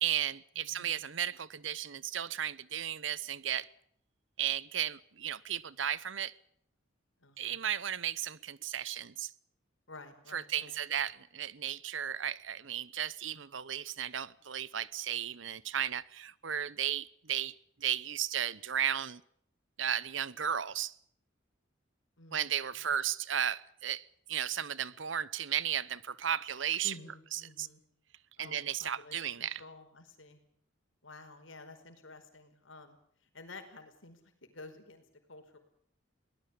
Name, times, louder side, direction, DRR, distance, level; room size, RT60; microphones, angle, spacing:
voice 1, 0.0-3.7 4.4-6.3 7.4-9.3 10.3-17.5 17.8-19.2 19.8-20.9 22.3-26.9 27.3-27.7 28.4-29.6, right 9 dB, 70° right, 0.9 m, -34 dB
voice 2, 0.6-1.0 7.2-7.7 9.9-10.8 22.2-23.0 26.8-27.8 28.4-30.4 31.0-35.6, left 2 dB, 80° left, 4.8 m, -52 dB
22.5 x 18.5 x 8.4 m
head